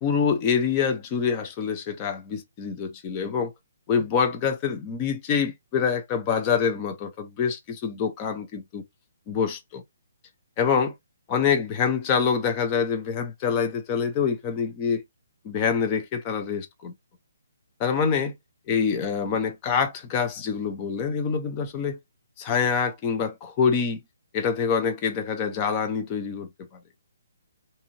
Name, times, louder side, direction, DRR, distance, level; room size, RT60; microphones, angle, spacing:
voice 1, 0.0-3.5 3.9-8.8 9.3-9.8 10.6-10.9 11.3-15.0 15.4-16.9 17.8-18.3 18.7-22.0 22.4-24.0 24.3-26.5, left 6 dB, 15° left, 0.5 m, -25 dB
2.6 x 2.5 x 2.8 m
hypercardioid pair, 175°, 0 cm